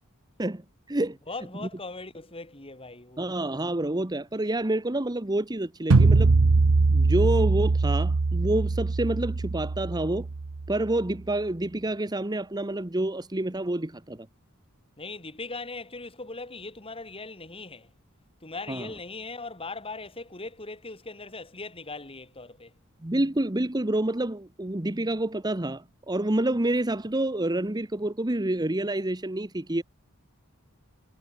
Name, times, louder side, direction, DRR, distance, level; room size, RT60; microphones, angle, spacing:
voice 1, 1.3-3.3 15.0-17.9 18.4-22.7, left 3 dB, 25° left, 3.9 m, -39 dB
voice 2, 3.2-6.3 6.9-10.3 10.7-14.3 18.7-18.9 23.0-29.8, right 1 dB, 20° right, 1.0 m, -28 dB
sound 1, 5.9-10.9, right 3 dB, 90° right, 0.8 m, -22 dB
head